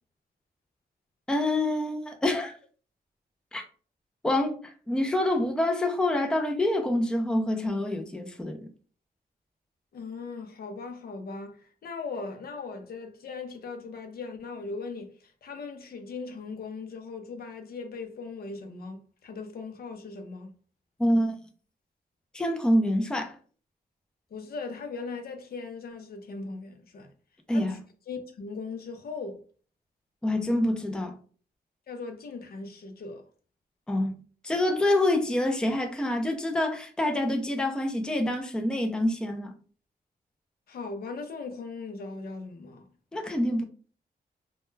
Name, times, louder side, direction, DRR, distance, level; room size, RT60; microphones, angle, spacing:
voice 1, 1.3-2.5 3.5-3.6 4.2-8.7 21.0-21.4 22.3-23.4 27.5-27.8 30.2-31.1 33.9-34.2 34.4-39.5 43.1-43.6, left 1 dB, 5° left, 0.4 m, -26 dB
voice 2, 9.9-20.5 24.3-27.1 27.5-27.8 28.1-29.4 31.9-33.2 40.7-42.8, left 4 dB, 70° left, 0.5 m, -39 dB
2.2 x 2.2 x 3.1 m
wide cardioid pair, 105°, 16 cm